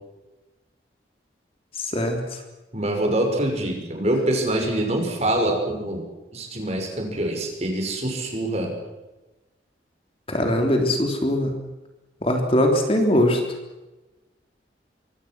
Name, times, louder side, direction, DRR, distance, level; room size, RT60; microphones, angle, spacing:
voice 1, 1.8-2.2 10.3-11.6 12.2-13.4, left 1 dB, 30° left, 3 dB, 3.5 m, -21 dB
voice 2, 2.7-6.0 6.3-8.7, right 1 dB, 35° right, 3 dB, 5.9 m, -25 dB
24.5 x 24.5 x 6.2 m, 1.1 s
head